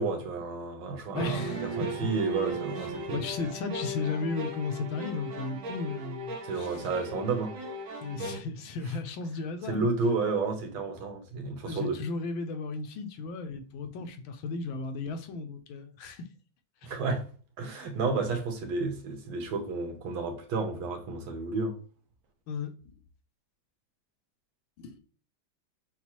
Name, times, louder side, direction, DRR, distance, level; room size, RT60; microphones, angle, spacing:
voice 1, 0.0-3.2 6.4-7.6 9.7-12.0 16.8-17.3 17.6-21.8, right 4 dB, 85° right, 1.8 m, -31 dB
voice 2, 1.1-2.1 3.1-6.7 8.0-9.9 11.6-16.3 16.8-16.9 22.5-22.9 24.8-25.0, left 4 dB, 85° left, 1.5 m, -35 dB
sound 1, 1.1-8.4, right 1 dB, 60° right, 0.9 m, -37 dB
7.0 x 2.4 x 3.0 m
omnidirectional pair, 2.2 m